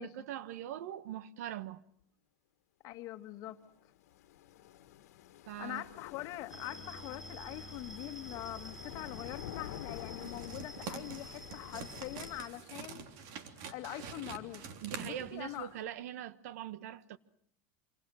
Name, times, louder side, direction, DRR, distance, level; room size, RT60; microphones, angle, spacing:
voice 1, 0.0-1.8 5.5-5.8 14.8-17.2, right 11 dB, 80° right, 1.3 m, -42 dB
voice 2, 2.8-3.6 5.6-13.0 13.7-14.6 15.0-15.7, left 16 dB, 45° left, 1.9 m, -43 dB
sound 1, 3.5-12.4, left 12 dB, 90° left, 1.6 m, -49 dB
sound 2, 6.5-12.5, equal, 5° right, 2.8 m, -50 dB
sound 3, 10.2-15.8, right 6 dB, 55° right, 3.2 m, -46 dB
27.5 x 26.5 x 6.4 m
supercardioid pair, 140°, 8 cm